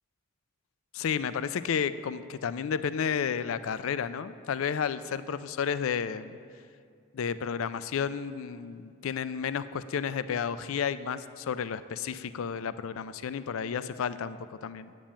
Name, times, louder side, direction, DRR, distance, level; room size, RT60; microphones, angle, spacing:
voice 1, 0.9-6.4 7.1-14.9, left 7 dB, 70° left, 14 dB, 0.4 m, -32 dB
8.4 x 7.4 x 8.8 m, 2.3 s
head